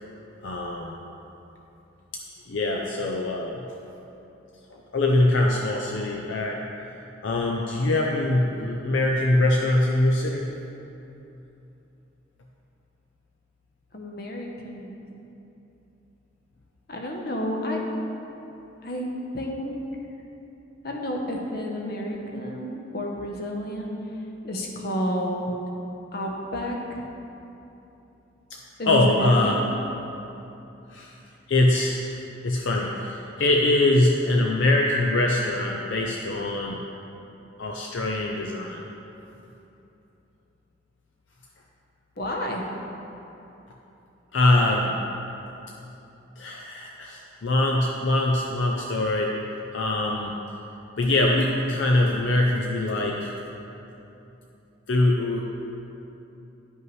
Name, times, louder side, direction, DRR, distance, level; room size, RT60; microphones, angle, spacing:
voice 1, 0.4-1.0 2.5-3.6 4.7-6.6 7.2-10.5 28.9-29.6 30.9-31.2 31.5-32.0 32.4-36.8 37.6-38.8 44.3-45.0 46.4-49.3 49.7-50.3 51.0-53.3 54.9-55.4, left 2 dB, 70° left, 0 dB, 0.5 m, -23 dB
voice 2, 13.9-15.0 16.9-17.8 18.8-19.1 19.3-19.8 20.8-23.9 24.4-25.5 26.1-26.8 28.8-29.6 42.2-42.6, equal, 50° left, 0 dB, 0.9 m, -30 dB
10.5 x 5.4 x 3.2 m, 2.9 s
head